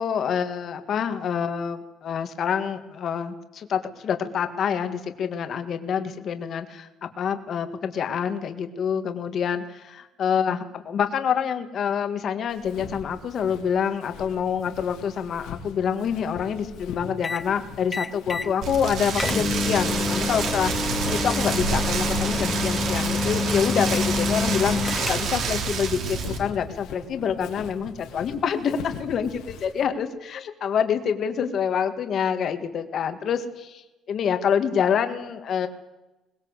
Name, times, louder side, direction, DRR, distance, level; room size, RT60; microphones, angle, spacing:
voice 1, 0.0-33.8 34.1-35.7, left 7 dB, 40° left, 8 dB, 2.0 m, -27 dB
Walk footsteps, 12.5-29.8, left 7 dB, 85° left, 3.0 m, -42 dB
sound 1, 17.2-17.5 17.9-18.5 18.8-18.9 19.2-25.5, left 4 dB, 15° left, 0.7 m, -27 dB
Rain, 18.6-26.4, right 5 dB, 55° right, 3.7 m, -28 dB
22.0 x 20.0 x 8.2 m, 1.0 s
cardioid pair, 165°, 0 cm